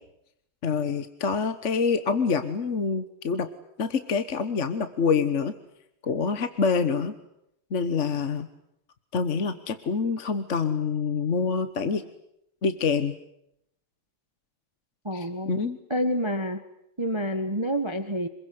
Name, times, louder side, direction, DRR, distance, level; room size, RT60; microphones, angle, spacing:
voice 1, 0.6-3.5 3.8-5.5 6.0-7.1 7.7-8.5 9.1-12.0 12.6-13.2 15.1-15.8, left 5 dB, 40° left, 11 dB, 1.3 m, -26 dB
voice 2, 15.0-15.5 15.9-16.6 17.0-18.3, equal, 15° right, 9 dB, 1.4 m, -28 dB
27.0 x 21.5 x 9.6 m, 0.79 s
omnidirectional pair, 2.4 m